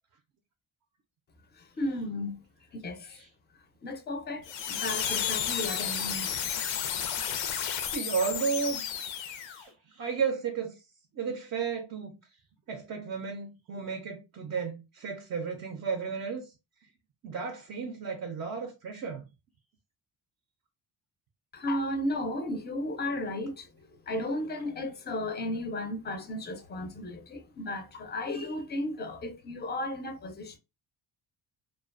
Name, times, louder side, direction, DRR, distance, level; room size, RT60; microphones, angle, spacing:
voice 1, 1.6-2.4 2.7-3.3 3.8-6.7 21.5-30.6, left 1 dB, 25° left, 0.4 m, -34 dB
sound 1, 4.4-9.6, left 8 dB, 90° left, 0.5 m, -32 dB
voice 2, 7.8-8.9 9.4-10.8 11.1-12.1 12.7-16.5 17.2-19.3, right 6 dB, 40° right, 0.4 m, -33 dB
2.4 x 2.2 x 2.4 m
cardioid pair, 125°, 44 cm